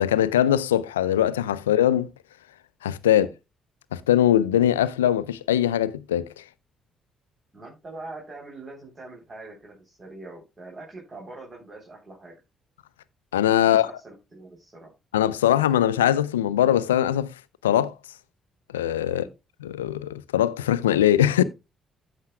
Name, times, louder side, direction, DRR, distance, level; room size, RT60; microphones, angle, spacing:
voice 1, 0.0-2.1 2.8-3.3 3.9-6.4 13.3-13.9 15.1-17.3 17.6-17.9 18.7-19.2 19.6-21.4, left 11 dB, 90° left, 0.4 m, -21 dB
voice 2, 7.5-12.3 13.6-14.9 19.1-19.3, right 2 dB, 35° right, 3.6 m, -43 dB
15.0 x 5.7 x 2.3 m
hypercardioid pair, 45°, 0 cm